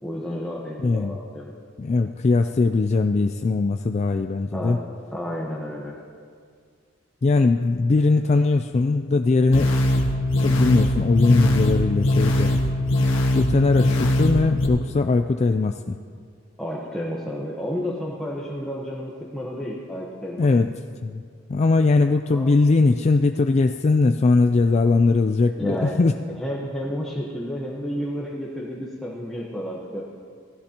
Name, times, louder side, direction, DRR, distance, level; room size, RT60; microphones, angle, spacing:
voice 1, 0.0-1.5 4.5-4.8 5.1-6.0 16.6-20.5 22.3-22.5 25.6-26.0 26.3-30.0, equal, 5° left, -4 dB, 1.1 m, -31 dB
voice 2, 0.8-1.2 1.8-4.8 7.2-9.7 10.4-12.5 13.3-16.0 20.4-20.8 21.0-21.2 21.5-26.1, left 3 dB, 35° left, 6 dB, 0.3 m, -20 dB
sound 1, 9.5-14.7, left 1 dB, 80° left, 1.6 m, -21 dB
17.0 x 15.0 x 2.9 m, 2.1 s
head